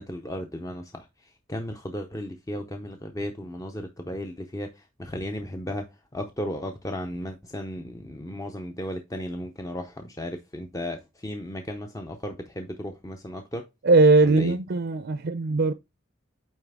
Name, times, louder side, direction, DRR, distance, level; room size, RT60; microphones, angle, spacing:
voice 1, 0.0-5.9 6.1-13.7 14.2-14.5, left 1 dB, 15° left, 0.6 m, -35 dB
voice 2, 13.8-15.7, right 3 dB, 55° right, 0.5 m, -19 dB
8.9 x 3.3 x 3.5 m
head